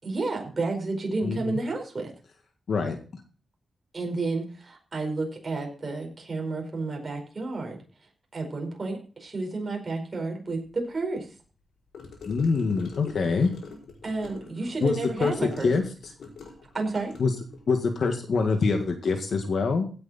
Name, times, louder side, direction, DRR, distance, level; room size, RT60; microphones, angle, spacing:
voice 1, 0.0-2.1 3.9-7.8 8.3-11.3 14.0-15.7 16.7-17.1, right 3 dB, 35° right, 1 dB, 4.8 m, -31 dB
voice 2, 1.2-1.6 2.7-3.2 12.3-13.5 14.8-15.8 17.2-17.3 17.7-19.8, left 4 dB, 60° left, 5 dB, 1.8 m, -25 dB
Gurgling / Car passing by / Sink (filling or washing), 11.9-17.6, left 5 dB, 85° left, 5.3 m, -44 dB
16.5 x 7.9 x 4.3 m, 0.38 s
wide cardioid pair, 120°, 0 cm